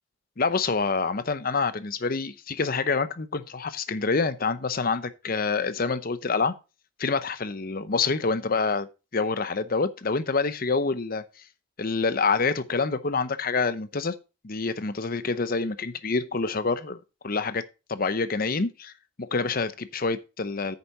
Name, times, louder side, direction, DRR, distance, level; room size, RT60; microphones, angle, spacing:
voice 1, 0.4-6.5 7.0-8.9 9.1-11.2 11.8-14.1 14.4-17.0 17.2-17.6 17.9-18.9 19.2-20.8, left 4 dB, 45° left, 0.8 m, -27 dB
9.3 x 6.8 x 4.0 m
head